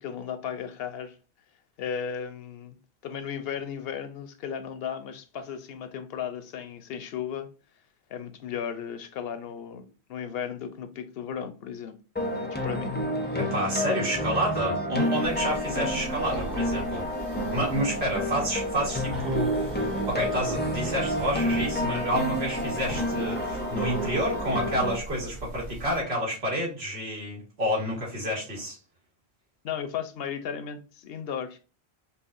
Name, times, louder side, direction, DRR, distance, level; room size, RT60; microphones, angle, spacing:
voice 1, 0.0-1.2 1.8-2.8 3.0-7.5 8.1-12.0 12.3-13.5 15.7-16.0 29.6-31.6, left 8 dB, 70° left, 0.7 m, -35 dB
sound 1, 12.2-25.0, equal, 15° left, 0.3 m, -30 dB
voice 2, 13.3-17.1 17.5-28.8, equal, 75° right, 1.9 m, -29 dB
sound 2, 15.2-26.0, right 3 dB, 50° right, 1.0 m, -42 dB
sound 3, 16.1-18.0 19.1-21.9 22.9-24.8, right 2 dB, 25° right, 1.0 m, -38 dB
5.5 x 2.2 x 2.5 m
omnidirectional pair, 1.1 m